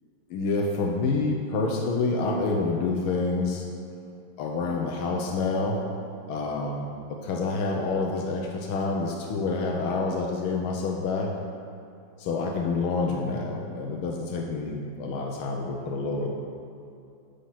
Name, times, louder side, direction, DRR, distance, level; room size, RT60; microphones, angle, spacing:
voice 1, 0.3-3.7 4.4-5.8 6.3-11.3 12.2-16.3, left 3 dB, 90° left, 1 dB, 1.8 m, -28 dB
10.5 x 6.9 x 6.0 m, 2.6 s
omnidirectional pair, 2.2 m